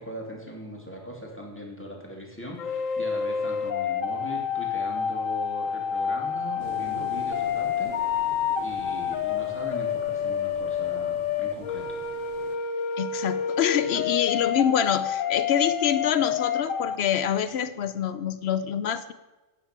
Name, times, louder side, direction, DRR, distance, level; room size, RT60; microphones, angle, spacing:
voice 1, 0.0-8.3 8.6-11.9, equal, 10° left, -1 dB, 2.4 m, -40 dB
sound 1, 2.6-17.0, left 7 dB, 85° left, 1.2 m, -28 dB
sound 2, 6.6-12.6, right 4 dB, 45° right, 1.1 m, -46 dB
voice 2, 13.0-19.1, left 9 dB, 60° left, 13 dB, 0.8 m, -26 dB
10.0 x 8.8 x 5.9 m, 1.2 s
omnidirectional pair, 1.3 m